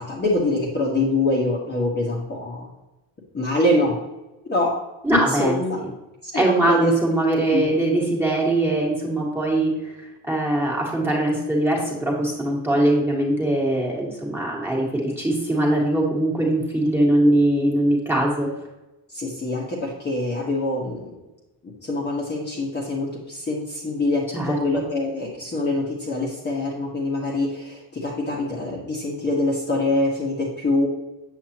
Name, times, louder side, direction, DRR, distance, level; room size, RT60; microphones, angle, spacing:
voice 1, 0.0-2.7 3.3-4.0 4.4-4.8 5.1-5.8 6.2-6.9 7.5-7.7 17.2-17.3 19.1-21.1 21.8-30.9, left 2 dB, 25° left, -4 dB, 1.4 m, -24 dB
voice 2, 5.0-5.6 6.4-18.5 24.3-24.8, right 1 dB, 5° right, -4 dB, 1.8 m, -21 dB
7.9 x 7.9 x 2.9 m, 0.99 s
cardioid pair, 175°, 45 cm